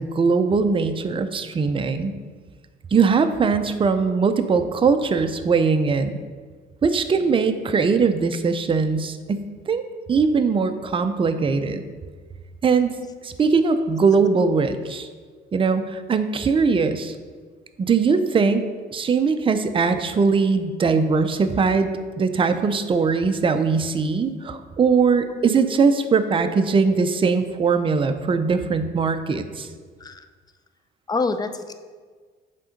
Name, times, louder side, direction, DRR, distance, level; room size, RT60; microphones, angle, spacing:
voice 1, 0.0-2.1 2.9-6.2 6.8-11.8 12.6-12.9 13.2-15.1 15.5-17.1 17.8-18.6 18.9-21.9 22.2-29.7, right 5 dB, 25° right, 8 dB, 0.5 m, -21 dB
voice 2, 25.1-25.5 30.0-30.2 31.1-31.7, left 3 dB, 20° left, 9 dB, 0.5 m, -27 dB
7.5 x 3.8 x 5.1 m, 1.5 s
cardioid pair, 90°, 19 cm